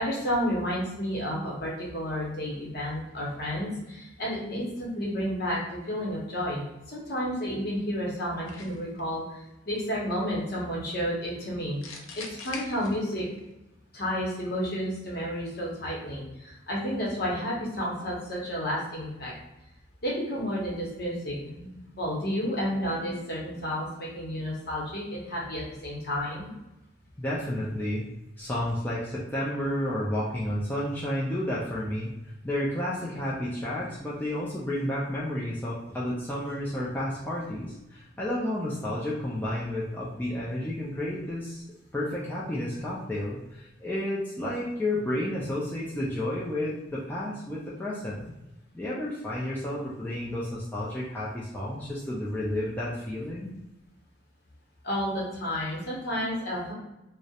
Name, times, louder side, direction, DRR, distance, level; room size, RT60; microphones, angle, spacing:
voice 1, 0.0-5.6 5.9-11.8 12.1-13.2 13.9-19.3 20.0-26.5 54.8-56.7, equal, 55° left, -4 dB, 0.8 m, -31 dB
sound 1, 8.5-9.0 11.8-13.4, left 4 dB, 90° left, 0.4 m, -41 dB
voice 2, 27.2-28.1 28.4-32.1 32.4-41.6 41.9-48.3 48.7-53.5, left 1 dB, 10° left, -7 dB, 0.3 m, -31 dB
2.3 x 2.0 x 2.7 m, 0.95 s
head